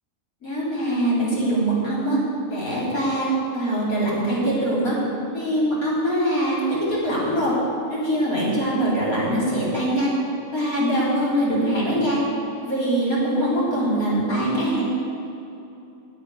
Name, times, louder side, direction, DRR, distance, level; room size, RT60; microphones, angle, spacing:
voice 1, 0.4-2.2 2.5-5.0 5.3-6.6 6.9-7.5 7.9-10.1 10.5-12.2 12.6-14.8, right 1 dB, 85° left, -6 dB, 4.0 m, -23 dB
10.5 x 7.9 x 9.4 m, 2.8 s
omnidirectional pair, 1.5 m